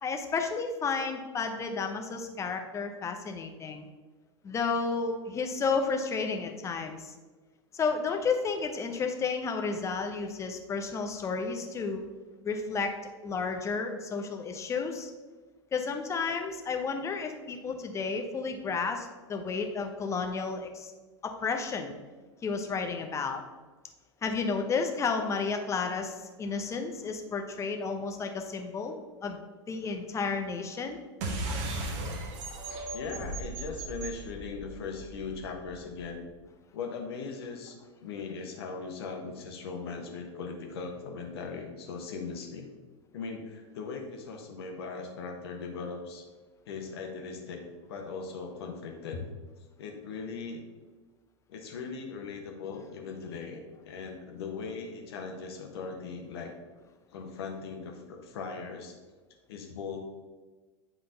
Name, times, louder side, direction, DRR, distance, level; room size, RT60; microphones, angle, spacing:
voice 1, 0.0-3.9 4.4-7.1 7.7-12.0 12.4-12.9 13.2-15.1 15.7-20.9 21.2-21.9 22.4-23.4 24.2-29.0 29.2-29.4 29.7-31.0, left 4 dB, 20° left, 4 dB, 0.8 m, -32 dB
sound 1, 31.2-36.1, right 2 dB, 45° right, 1.1 m, -37 dB
voice 2, 32.9-36.2 36.7-42.7 43.1-46.3 46.7-47.6 47.9-49.3 49.8-50.6 51.5-56.5 57.1-58.9 59.5-60.0, left 4 dB, 55° left, 2 dB, 1.3 m, -39 dB
9.4 x 3.9 x 3.9 m, 1.3 s
figure-of-eight pair, 90°, 16 cm